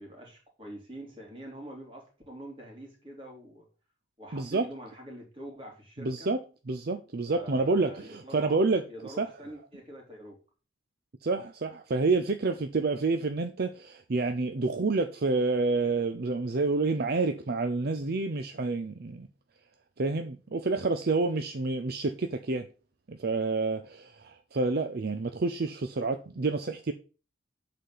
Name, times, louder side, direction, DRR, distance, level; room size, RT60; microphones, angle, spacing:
voice 1, 0.0-3.6 4.2-6.3 7.3-8.6 8.9-10.4, right 1 dB, 30° right, 3.1 m, -45 dB
voice 2, 4.3-4.6 6.0-6.4 6.7-9.3 11.2-19.3 20.0-22.7 23.1-26.9, right 3 dB, 55° right, 0.6 m, -28 dB
8.4 x 4.3 x 5.6 m
head